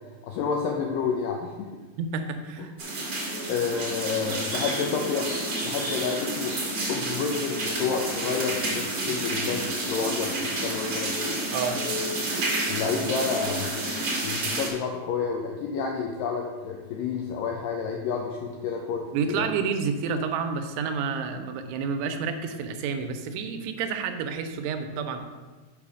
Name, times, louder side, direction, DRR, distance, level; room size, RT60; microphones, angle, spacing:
voice 1, 0.2-1.7 3.5-5.3 5.6-6.6 6.9-11.1 12.7-13.7 14.2-19.4, left 5 dB, 90° left, 1 dB, 1.9 m, -29 dB
voice 2, 2.0-2.7 11.5-11.8 19.1-25.2, right 5 dB, 85° right, 7 dB, 2.8 m, -29 dB
sound 1, 2.8-14.7, right 1 dB, 55° right, 1.0 m, -30 dB
6.8 x 4.9 x 6.1 m, 1.3 s
omnidirectional pair, 4.7 m